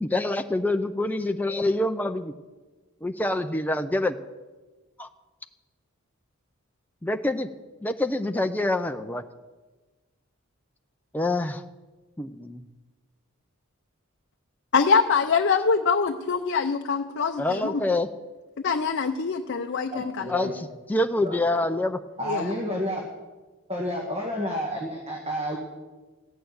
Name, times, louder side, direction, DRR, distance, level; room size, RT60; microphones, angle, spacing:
voice 1, 0.0-2.3 3.0-4.2 5.0-5.1 7.0-7.5 7.8-9.2 11.1-11.6 12.2-12.7 17.4-18.1 20.3-22.0, left 2 dB, 10° left, 6 dB, 0.5 m, -26 dB
voice 2, 14.7-17.8 18.6-20.3 22.3-22.5, left 5 dB, 55° left, 5 dB, 0.6 m, -24 dB
voice 3, 19.9-20.5 21.2-21.4 22.2-23.0 23.7-25.6, equal, 25° right, -1 dB, 1.7 m, -30 dB
15.0 x 6.7 x 9.4 m, 1.2 s
head